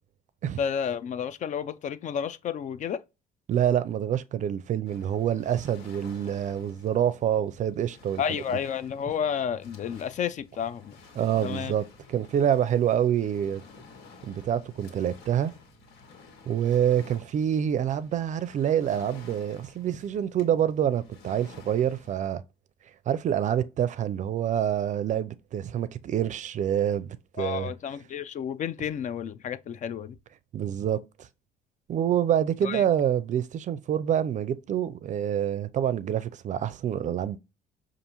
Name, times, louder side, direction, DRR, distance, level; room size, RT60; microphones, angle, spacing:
voice 1, 0.6-3.0 8.2-11.0 11.4-11.7 27.4-30.2 32.6-32.8, left 8 dB, 45° left, 0.4 m, -31 dB
voice 2, 3.5-8.2 11.2-13.6 14.3-15.5 16.5-22.4 23.1-27.7 30.5-31.3 31.9-37.4, right 10 dB, 45° right, 0.5 m, -27 dB
Waves surf, 4.9-22.2, left 4 dB, 80° left, 1.6 m, -51 dB
6.6 x 2.5 x 2.9 m
cardioid pair, 110°, 17 cm